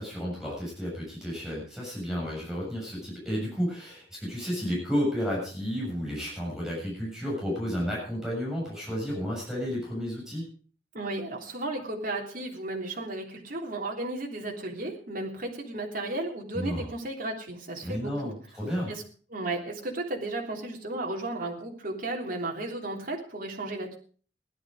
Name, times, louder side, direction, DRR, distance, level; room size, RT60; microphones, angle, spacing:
voice 1, 0.0-10.4 16.5-16.9 17.8-18.9, equal, 5° right, -4 dB, 7.3 m, -32 dB
voice 2, 10.9-18.3 18.9-19.0 19.3-23.9, right 2 dB, 50° right, 1 dB, 3.3 m, -34 dB
16.0 x 12.0 x 5.0 m, 0.43 s
head